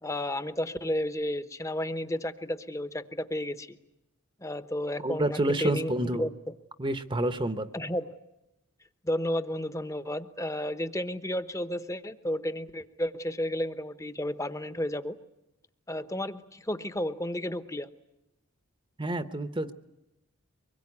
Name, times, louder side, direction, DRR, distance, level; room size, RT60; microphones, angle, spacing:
voice 1, 0.0-3.8 4.4-6.3 7.7-8.1 9.0-15.2 15.9-17.9, left 1 dB, 15° left, 12 dB, 1.0 m, -32 dB
voice 2, 5.0-6.3 6.8-7.7 19.0-19.7, right 1 dB, 20° right, 11 dB, 0.9 m, -28 dB
24.5 x 21.5 x 9.8 m, 0.91 s
head